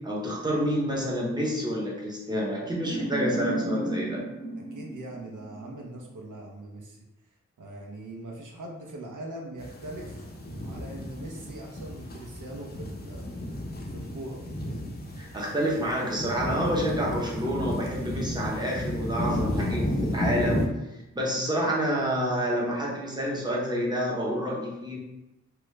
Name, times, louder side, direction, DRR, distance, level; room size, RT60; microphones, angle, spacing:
voice 1, 0.0-4.2 15.2-20.7 21.1-25.0, equal, 15° right, -4 dB, 0.9 m, -28 dB
sound 1, 2.7-5.8, right 1 dB, 50° right, 0.8 m, -33 dB
voice 2, 4.7-7.0 7.6-10.2 10.6-13.3 13.9-14.4, right 1 dB, 85° right, 0 dB, 0.7 m, -41 dB
sound 2, 9.6-20.7, left 1 dB, 35° left, 0.6 m, -33 dB
2.9 x 2.3 x 3.2 m, 0.97 s
wide cardioid pair, 85°, 30 cm